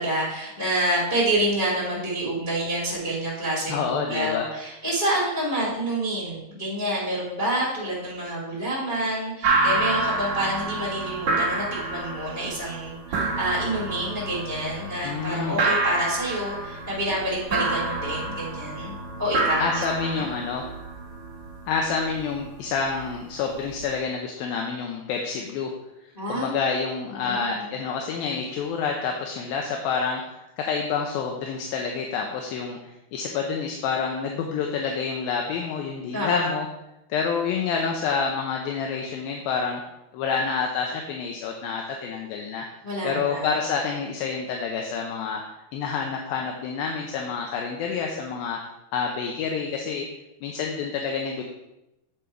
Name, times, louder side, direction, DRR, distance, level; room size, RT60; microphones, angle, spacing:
voice 1, 0.0-20.2 26.1-26.5 27.1-27.8 36.1-36.5 42.8-43.5, right 1 dB, 15° left, -6 dB, 1.9 m, -28 dB
voice 2, 3.7-4.5 15.0-15.6 19.6-20.6 21.7-25.7 26.3-30.2 30.6-36.7 37.1-39.8 40.1-42.7 43.0-45.4 45.7-48.6 48.9-50.1 50.4-51.4, left 5 dB, 75° left, 1 dB, 2.4 m, -28 dB
sound 1, 9.4-24.0, right 3 dB, 50° right, 2.0 m, -28 dB
8.4 x 5.4 x 4.5 m, 0.89 s
omnidirectional pair, 4.5 m